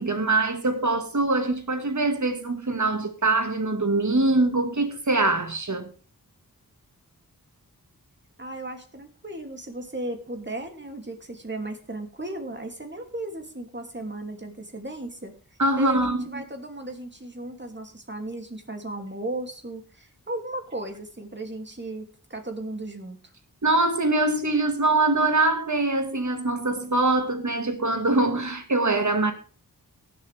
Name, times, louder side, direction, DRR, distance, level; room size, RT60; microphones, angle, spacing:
voice 1, 0.0-5.9 15.6-16.4 23.6-29.3, right 2 dB, 55° right, 2.0 m, -23 dB
voice 2, 8.4-15.3 15.8-23.2, right 1 dB, 30° right, 2.7 m, -36 dB
18.0 x 7.6 x 3.5 m
cardioid pair, 45°, 36 cm